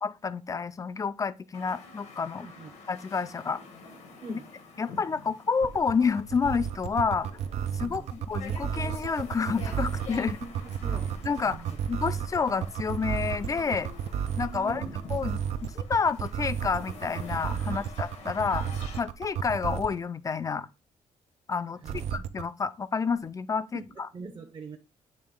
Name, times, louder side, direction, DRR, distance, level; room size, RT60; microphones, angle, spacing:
voice 1, 0.0-2.5 2.9-3.6 4.3-4.4 4.8-7.3 7.7-10.4 11.2-13.9 14.4-14.8 15.1-18.7 19.0-20.7 21.5-21.8 22.1-24.1, left 5 dB, 30° left, 0.4 m, -29 dB
sound 1, 1.5-19.0, left 3 dB, 90° left, 2.0 m, -47 dB
voice 2, 2.3-2.7 4.2-4.4 7.8-8.1 10.2-11.1 11.4-11.8 13.8-13.9 14.5-14.9 17.6-17.8 21.8-22.0 23.7-24.8, right 5 dB, 40° right, 0.8 m, -43 dB
sound 2, 5.6-20.0 21.8-22.4, right 8 dB, 65° right, 0.5 m, -32 dB
8.8 x 3.2 x 3.7 m
cardioid pair, 90°, 12 cm